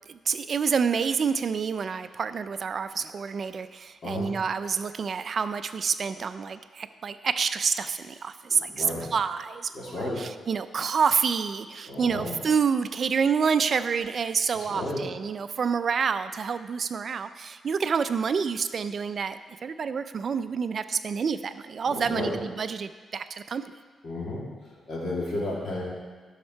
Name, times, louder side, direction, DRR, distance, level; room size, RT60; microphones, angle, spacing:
voice 1, 0.1-8.9 9.1-23.6, right 6 dB, 50° right, 11 dB, 0.4 m, -28 dB
voice 2, 8.5-9.1 9.7-10.3 11.9-12.3 14.5-15.0 21.9-22.4 24.0-25.8, left 1 dB, 55° left, -4 dB, 2.7 m, -33 dB
12.0 x 6.6 x 4.5 m, 1.4 s
cardioid pair, 120°, 0 cm